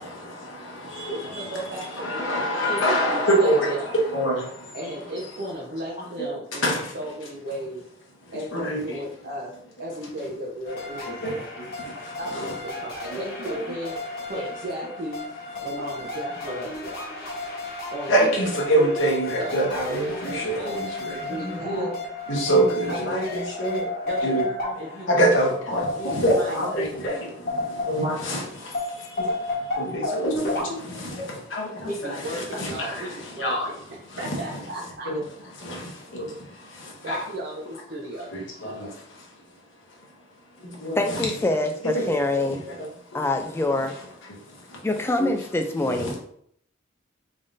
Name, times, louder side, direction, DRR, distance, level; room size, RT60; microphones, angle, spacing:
voice 1, 0.0-5.4 6.0-7.1 7.5-7.6 8.2-9.3 11.1-12.6 13.0-13.2 13.5-13.6 14.4-14.5 15.5-15.9 17.4-17.6 18.1-21.9 22.3-24.5 24.8-37.3 38.3-41.3 41.8-44.9 45.2-46.2, right 1 dB, 75° left, 1.0 m, -28 dB
voice 2, 1.1-2.2 2.7-3.9 4.7-6.7 6.9-7.8 8.3-9.5 9.8-11.5 12.2-14.0 14.3-15.2 15.6-16.7 17.9-18.3 19.0-19.1 19.4-19.5 19.9-20.2 20.5-20.8 21.3-21.9 24.1-25.4 25.9-26.6 31.9-33.8 34.2-35.1 37.0-38.3, right 1 dB, 50° right, 0.7 m, -35 dB
sound 1, 10.7-28.3 28.7-30.6, left 2 dB, 50° left, 1.1 m, -32 dB
voice 3, 41.0-42.6 43.1-44.0 44.8-46.2, left 2 dB, 10° left, 0.3 m, -25 dB
3.8 x 3.5 x 2.6 m
head